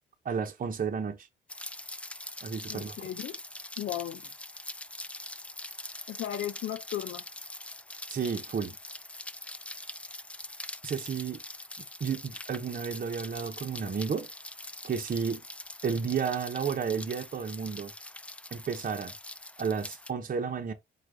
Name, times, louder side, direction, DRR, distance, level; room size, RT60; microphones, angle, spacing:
voice 1, 0.2-1.3 2.4-3.1 8.1-8.8 10.8-11.4 12.0-14.3 14.8-15.4 15.8-17.9 18.5-19.1 19.6-20.7, right 6 dB, 45° right, 0.9 m, -32 dB
Rain, 1.5-20.1, left 1 dB, 5° left, 0.3 m, -43 dB
voice 2, 2.7-3.4 3.8-4.2 6.1-7.2, left 11 dB, 65° left, 0.6 m, -35 dB
4.5 x 2.5 x 3.8 m
cardioid pair, 90°, 21 cm